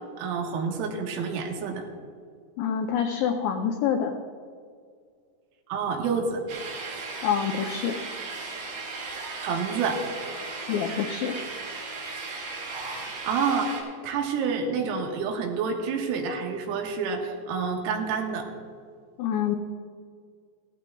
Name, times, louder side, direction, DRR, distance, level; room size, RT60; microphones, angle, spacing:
voice 1, 0.2-1.9 5.7-6.4 9.4-10.0 13.3-13.7 14.0-18.5, right 5 dB, 85° right, 1 dB, 4.1 m, -28 dB
voice 2, 2.6-4.2 7.2-8.0 10.7-11.3 19.2-19.6, left 8 dB, 90° left, 3 dB, 2.5 m, -26 dB
sound 1, 6.5-13.8, right 3 dB, 55° right, 3.5 m, -36 dB
17.0 x 14.5 x 2.3 m, 2.1 s
omnidirectional pair, 6.0 m